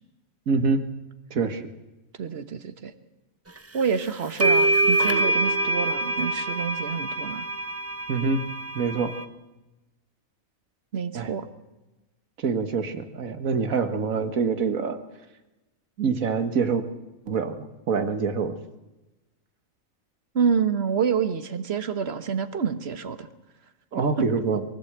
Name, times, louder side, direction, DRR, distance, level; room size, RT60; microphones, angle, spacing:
voice 1, 0.5-0.9 1.3-1.7 8.1-8.4 8.7-9.1 11.1-11.3 12.4-15.0 16.0-16.8 17.3-17.6 17.9-18.6 23.9-24.6, right 5 dB, 85° right, 9 dB, 1.9 m, -25 dB
voice 2, 2.2-2.9 3.7-7.5 10.9-11.5 20.3-23.3, right 6 dB, 50° right, 10 dB, 1.4 m, -27 dB
sound 1, 3.8-3.9 4.4-9.2, right 1 dB, 15° right, 0.7 m, -25 dB
22.5 x 15.5 x 8.0 m, 1.1 s
omnidirectional pair, 1.4 m